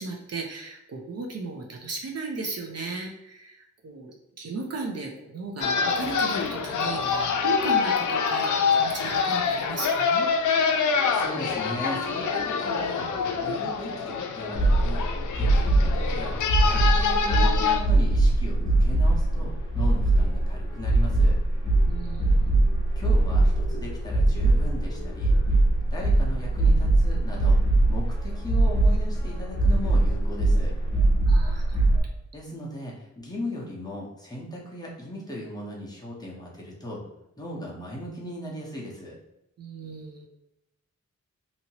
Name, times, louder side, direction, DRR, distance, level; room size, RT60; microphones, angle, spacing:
voice 1, 0.0-10.3 21.9-22.5 31.3-31.9 39.6-40.3, right 3 dB, 55° right, 0 dB, 0.5 m, -36 dB
sound 1, 5.6-17.8, left 5 dB, 90° left, 0.4 m, -26 dB
voice 2, 11.1-13.1 13.4-15.0 15.4-16.4 16.6-21.4 23.0-25.4 25.9-27.6 27.9-30.7 32.3-37.0 37.4-39.2, left 1 dB, 15° left, -5 dB, 0.9 m, -37 dB
sound 2, 14.5-32.0, right 2 dB, 40° left, 1.0 m, -22 dB
2.8 x 2.8 x 2.8 m, 0.86 s
wide cardioid pair, 135°, 30 cm